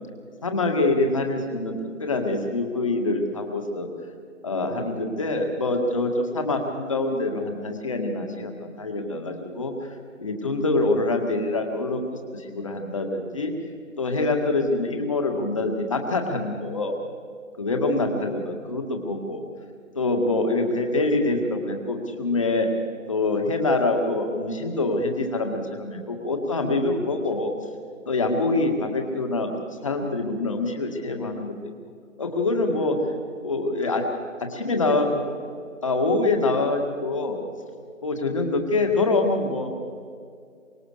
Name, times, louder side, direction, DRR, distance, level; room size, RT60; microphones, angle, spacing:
voice 1, 0.4-3.9 4.4-9.9 10.2-12.0 12.3-13.5 14.0-17.0 17.6-19.4 20.0-22.7 23.1-27.5 28.1-29.5 29.8-31.5 32.2-33.0 33.4-34.0 34.5-35.2 35.8-37.4 38.0-39.7, left 2 dB, 25° left, 4 dB, 1.9 m, -25 dB
25.0 x 22.5 x 6.6 m, 2.2 s
figure-of-eight pair, 160°, 39 cm